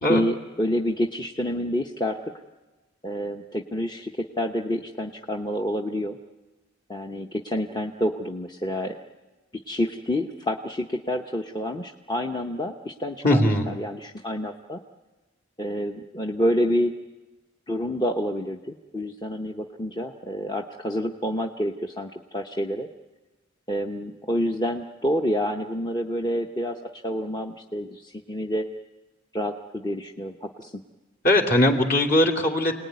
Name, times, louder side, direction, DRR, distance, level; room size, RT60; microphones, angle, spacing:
voice 1, 0.1-2.2 3.0-6.2 6.9-9.0 9.7-14.8 15.6-16.9 17.7-22.9 23.7-28.7 29.3-30.8, equal, 20° left, 2 dB, 0.9 m, -28 dB
voice 2, 13.2-13.7 31.2-32.7, left 1 dB, 45° left, 3 dB, 3.0 m, -20 dB
29.5 x 19.5 x 9.5 m, 1.2 s
head